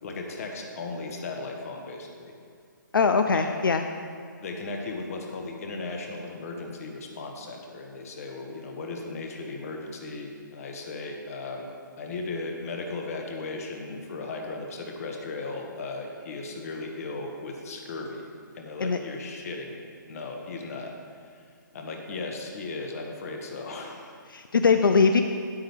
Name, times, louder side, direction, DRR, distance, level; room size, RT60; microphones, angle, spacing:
voice 1, 0.0-2.3 3.3-3.6 4.4-11.7 12.0-18.3 18.5-20.9 21.2-21.4 21.7-24.1, left 3 dB, 45° left, 2 dB, 1.3 m, -36 dB
voice 2, 2.9-3.8 18.8-19.0 24.3-25.2, left 5 dB, 85° left, 7 dB, 0.5 m, -21 dB
9.4 x 8.7 x 3.5 m, 2.2 s
hypercardioid pair, 150°, 11 cm